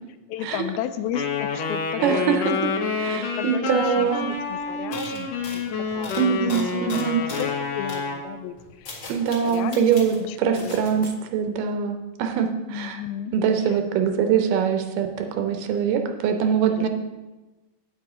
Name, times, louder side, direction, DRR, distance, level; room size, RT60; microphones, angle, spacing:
voice 1, 0.3-1.3 1.5-2.5 3.0-4.1 4.5-6.2 6.7-9.1 9.4-9.9 10.2-11.1 12.7-13.3 13.7-13.8 16.7-16.9, left 10 dB, 85° left, 10 dB, 2.3 m, -34 dB
Wind instrument woodwind instrument, 1.1-8.3, left 4 dB, 65° left, 1.6 m, -28 dB
voice 2, 2.0-2.5 3.0-4.3 6.2-7.2 9.1-13.0 13.3-16.9, right 7 dB, 75° right, 6 dB, 2.1 m, -23 dB
sound 1, 3.8-3.9 4.1-4.4 4.9-7.6 7.9-8.1 8.6-10.2 10.5-11.1, left 3 dB, 45° left, 1.9 m, -39 dB
9.0 x 7.9 x 4.9 m, 1.1 s
omnidirectional pair, 4.4 m